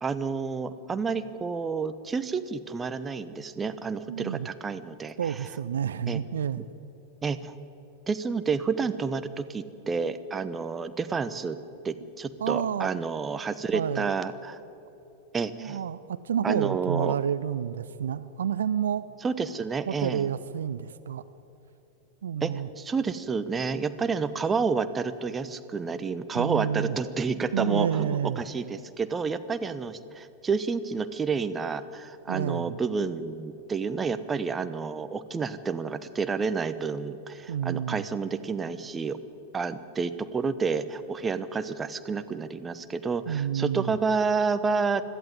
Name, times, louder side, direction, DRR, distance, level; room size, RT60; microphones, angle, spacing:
voice 1, 0.0-5.3 6.1-6.2 7.2-7.5 8.1-11.6 11.8-14.6 15.3-15.8 16.4-17.1 19.2-20.3 22.4-39.2 39.5-45.0, right 5 dB, 15° right, 12 dB, 0.9 m, -30 dB
voice 2, 4.1-4.5 5.2-6.7 12.4-12.9 13.7-14.1 15.6-19.1 19.9-21.2 22.2-22.7 26.3-27.0 27.5-28.4 32.3-32.8 37.5-38.0 43.3-43.9, right 8 dB, 65° right, 14 dB, 0.5 m, -29 dB
21.0 x 14.0 x 9.5 m, 2.9 s
figure-of-eight pair, 90°, 0 cm